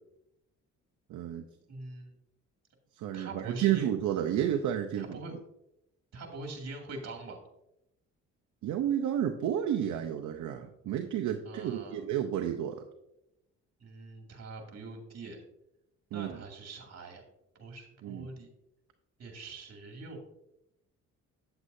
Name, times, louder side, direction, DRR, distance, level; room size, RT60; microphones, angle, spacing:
voice 1, 1.1-1.5 3.0-5.2 8.6-12.8 16.1-16.4 18.0-18.3, right 10 dB, 75° right, 4 dB, 0.7 m, -31 dB
voice 2, 1.7-2.2 3.1-3.9 4.4-4.5 5.0-5.3 6.1-7.4 11.4-12.0 13.8-15.4 16.1-17.2 17.5-18.5 19.2-20.2, right 3 dB, 60° right, 2 dB, 2.4 m, -43 dB
8.8 x 8.0 x 2.7 m, 0.84 s
cardioid pair, 90°, 30 cm